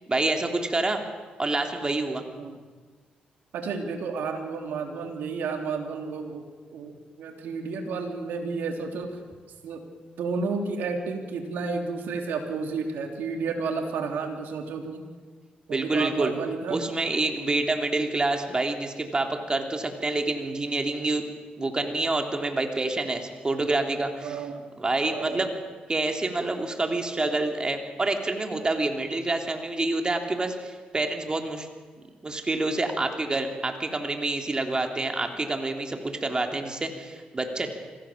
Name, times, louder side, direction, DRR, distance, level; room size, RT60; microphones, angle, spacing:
voice 1, 0.1-1.0 1.4-2.2 15.7-16.3 16.7-21.2 21.6-24.4 24.8-25.5 25.9-31.7 32.2-37.7, right 2 dB, 25° right, 4 dB, 3.3 m, -27 dB
voice 2, 3.5-9.2 9.6-9.9 10.2-15.0 15.7-16.8 24.2-24.7 25.1-25.5, right 4 dB, 80° right, 4 dB, 3.3 m, -31 dB
25.5 x 17.0 x 7.5 m, 1.5 s
cardioid pair, 70°, 3 cm